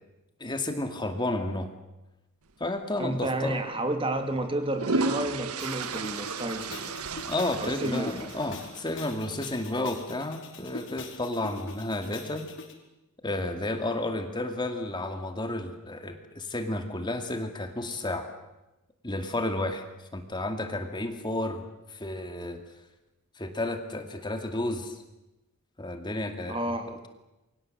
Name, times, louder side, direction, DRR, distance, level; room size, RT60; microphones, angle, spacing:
voice 1, 0.4-1.7 2.6-3.6 7.3-12.5 13.2-18.3 19.0-19.8 20.1-22.6 23.4-25.0 25.8-26.6 26.9-27.1, left 2 dB, 20° left, 6 dB, 2.3 m, -32 dB
voice 2, 3.0-6.9 7.6-8.3 26.5-26.9, right 1 dB, 25° right, 7 dB, 2.8 m, -31 dB
sound 1, 3.1-3.3 4.4-9.0, right 3 dB, 80° right, 1.6 m, -33 dB
sound 2, 5.6-12.7, left 3 dB, 60° left, 4.9 m, -43 dB
29.5 x 23.5 x 7.9 m, 0.99 s
head